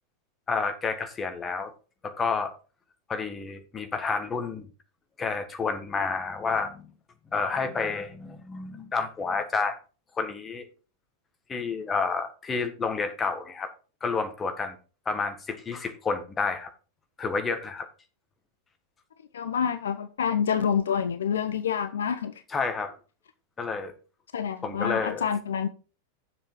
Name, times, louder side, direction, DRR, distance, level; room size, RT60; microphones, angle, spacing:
voice 1, 0.5-1.7 2.0-2.5 3.1-4.7 5.2-6.9 7.3-9.8 10.2-10.7 11.5-13.7 14.0-14.8 15.1-16.7 17.2-17.9 22.5-22.9 23.6-23.9 24.6-25.3, left 4 dB, 20° left, 1.7 m, -30 dB
voice 2, 19.3-22.3 24.3-25.7, left 7 dB, 65° left, 0.7 m, -27 dB
8.0 x 7.3 x 4.7 m
figure-of-eight pair, 90°, 0 cm